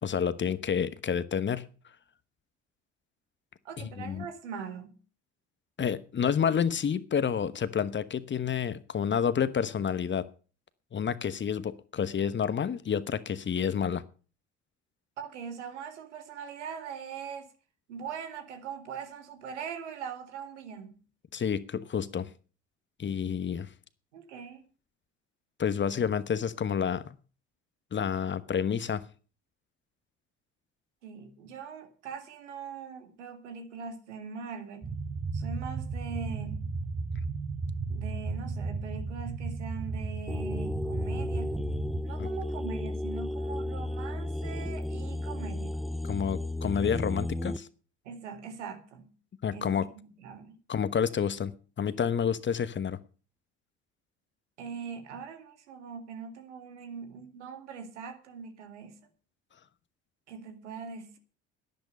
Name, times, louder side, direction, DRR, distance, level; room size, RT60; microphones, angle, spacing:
voice 1, 0.0-1.6 3.8-4.3 5.8-10.3 10.9-14.0 21.3-22.3 23.0-23.7 25.6-27.2 27.9-29.0 42.2-42.3 46.0-47.7 49.4-49.9 50.7-53.0, left 7 dB, 35° left, 1.1 m, -29 dB
voice 2, 3.6-5.0 15.2-17.5 17.9-21.0 24.1-24.6 31.0-35.0 35.3-36.7 37.9-41.5 42.0-45.8 48.0-49.1 49.5-50.6 54.6-59.0 60.3-61.2, right 6 dB, 80° right, 2.0 m, -41 dB
sound 1, 34.8-42.0, right 4 dB, 25° right, 1.1 m, -34 dB
sound 2, 40.3-47.6, left 1 dB, ahead, 0.7 m, -33 dB
11.0 x 10.5 x 6.7 m
hypercardioid pair, 60°, 35 cm